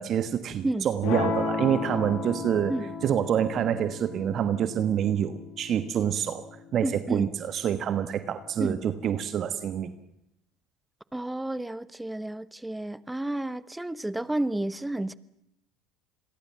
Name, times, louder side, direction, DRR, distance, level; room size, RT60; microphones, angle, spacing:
voice 1, 0.0-6.4 6.7-9.9, right 9 dB, 45° right, 11 dB, 1.4 m, -27 dB
sound 1, 1.0-7.1, left 5 dB, 65° left, 7.5 m, -34 dB
voice 2, 6.8-7.3 8.6-8.8 11.1-15.2, right 1 dB, 5° right, 17 dB, 1.2 m, -31 dB
28.0 x 22.5 x 7.5 m, 0.81 s
hypercardioid pair, 75°, 0 cm